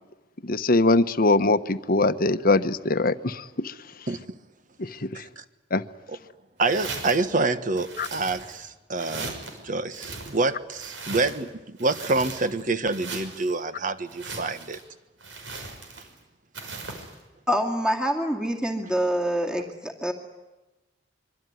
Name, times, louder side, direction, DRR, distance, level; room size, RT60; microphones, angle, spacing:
voice 1, 0.4-3.7 4.8-5.2 5.7-5.8 8.0-8.1, left 2 dB, 50° left, 12 dB, 1.1 m, -22 dB
voice 2, 6.6-14.8, right 3 dB, 45° right, 11 dB, 1.4 m, -27 dB
sound 1, 6.6-7.3 7.8-8.6 9.0-9.6 9.9-11.5 11.8-12.6 12.9-13.5 14.1-14.8 15.2-16.2 16.5-17.1, right 3 dB, 85° right, 5.8 m, -38 dB
voice 3, 17.5-20.1, equal, 5° right, 1 dB, 2.3 m, -26 dB
25.0 x 24.0 x 9.5 m, 1.1 s
head